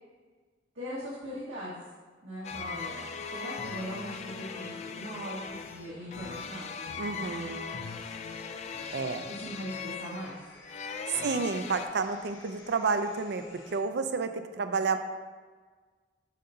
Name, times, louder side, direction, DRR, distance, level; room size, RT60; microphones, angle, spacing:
voice 1, 0.7-1.8 2.2-3.0 3.3-7.5 9.0-10.4 11.1-11.3, equal, 85° right, -9 dB, 1.3 m, -40 dB
sound 1, 2.4-11.9, left 6 dB, 35° left, 0.3 m, -39 dB
sound 2, 2.8-13.8, left 2 dB, 80° left, 0.9 m, -54 dB
voice 2, 7.0-7.8 8.9-9.3 11.2-13.4 13.7-15.0, right 4 dB, 60° right, 8 dB, 0.4 m, -30 dB
7.4 x 2.7 x 5.5 m, 1.4 s
head